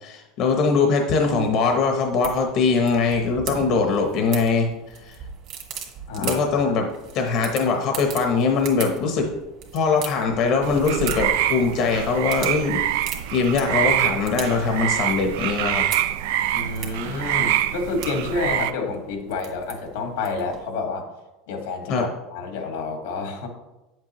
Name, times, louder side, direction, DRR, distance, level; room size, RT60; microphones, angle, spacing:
voice 1, 0.0-4.7 5.0-5.1 6.2-6.9 7.1-9.3 9.7-13.0 13.3-15.8 21.9-22.0, left 4 dB, 45° left, 3 dB, 0.9 m, -22 dB
sound 1, 1.2-20.6, right 7 dB, 45° right, 1.7 m, -39 dB
voice 2, 6.1-6.8 16.5-21.1 21.5-23.5, left 3 dB, 85° left, 3 dB, 1.8 m, -29 dB
sound 2, 10.6-18.7, right 12 dB, 70° right, 0.4 m, -25 dB
9.0 x 7.6 x 3.0 m, 1.0 s
supercardioid pair, 155°, 0 cm